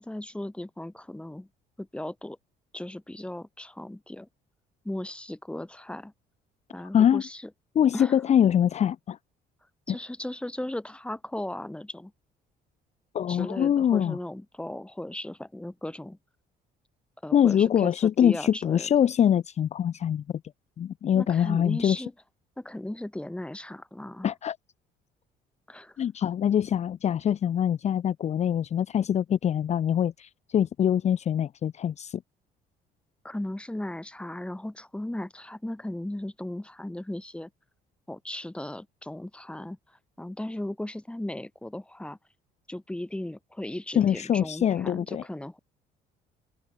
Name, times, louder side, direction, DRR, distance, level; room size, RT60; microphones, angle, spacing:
voice 1, 0.0-1.5 1.8-2.4 2.7-4.3 4.8-6.1 6.7-7.5 7.9-8.2 9.9-12.1 13.3-16.2 17.2-18.9 21.1-22.1 22.6-24.3 25.7-26.0 33.2-37.5 38.1-42.2 42.7-45.6, left 1 dB, 5° left, 4.6 m, -36 dB
voice 2, 7.8-9.2 9.9-10.0 13.1-14.2 17.3-20.2 20.8-22.0 24.2-24.6 26.0-32.2 44.0-45.2, left 9 dB, 40° left, 0.7 m, -24 dB
open air
cardioid pair, 110°, 17 cm